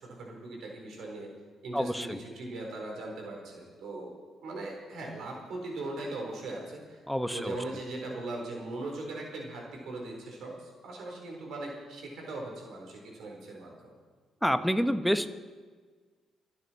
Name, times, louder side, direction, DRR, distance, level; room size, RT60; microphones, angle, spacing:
voice 1, 0.0-1.3 1.6-4.1 4.4-7.0 7.3-13.9, right 2 dB, 75° right, 0 dB, 4.2 m, -39 dB
voice 2, 1.7-2.2 7.1-7.6 14.4-15.3, equal, ahead, 10 dB, 0.9 m, -28 dB
25.5 x 9.5 x 4.6 m, 1.5 s
cardioid pair, 90°, 0 cm